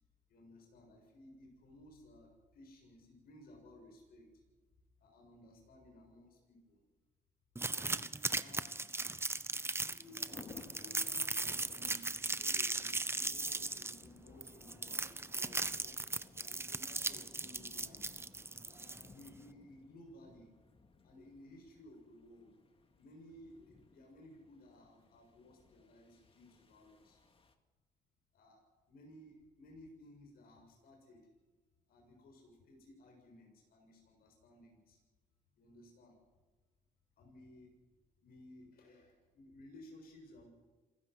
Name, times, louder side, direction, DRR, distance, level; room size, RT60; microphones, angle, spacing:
voice 1, 0.3-4.3 5.0-6.8 7.7-8.0 8.4-8.7 9.0-9.1 9.7-16.0 16.4-18.2 18.6-20.5 21.0-22.5 23.0-27.2 28.3-28.6 28.9-31.3 31.9-35.0 35.6-36.1 37.2-37.7 38.2-40.5, left 1 dB, 75° left, 1 dB, 7.0 m, -58 dB
sound 1, 7.6-19.3, right 3 dB, 15° right, 0.9 m, -38 dB
sound 2, 10.3-27.5, left 4 dB, 35° left, 2.2 m, -60 dB
27.5 x 15.5 x 6.2 m, 1.3 s
cardioid pair, 95°, 16 cm